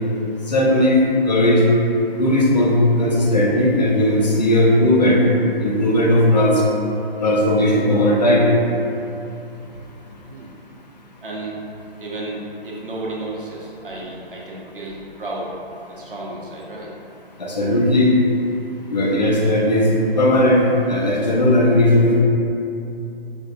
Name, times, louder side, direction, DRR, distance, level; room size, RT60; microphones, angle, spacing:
voice 1, 0.5-1.0 1.3-1.6 2.1-5.2 5.6-6.6 7.2-8.5 17.4-18.1 18.9-19.9 20.2-22.2, left 1 dB, 45° left, -3 dB, 0.6 m, -16 dB
voice 2, 10.2-10.6 11.2-11.6 12.0-15.5 15.9-16.9, right 2 dB, 60° right, -3 dB, 0.7 m, -32 dB
5.2 x 2.6 x 2.4 m, 2.8 s
figure-of-eight pair, 140°, 30 cm